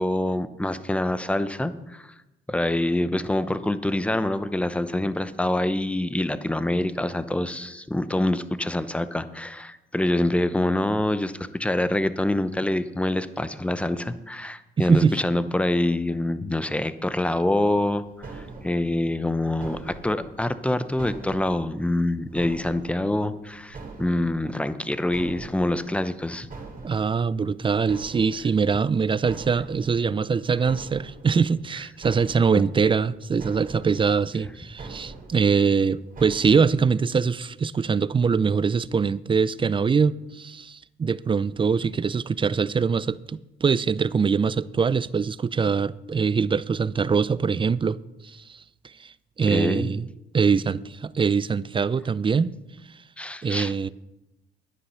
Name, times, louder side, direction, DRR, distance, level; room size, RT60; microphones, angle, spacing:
voice 1, 0.0-2.1 2.5-26.5 32.5-32.7 49.5-49.9 53.2-53.7, left 1 dB, 5° left, 0.7 m, -26 dB
voice 2, 14.8-15.2 26.8-48.0 48.2-48.6 49.0-49.1 49.4-50.1 50.3-52.6 53.4-53.9, right 5 dB, 25° right, 0.4 m, -23 dB
sound 1, 17.6-37.5, right 3 dB, 45° right, 2.8 m, -44 dB
9.9 x 9.9 x 5.7 m
cardioid pair, 90°, 20 cm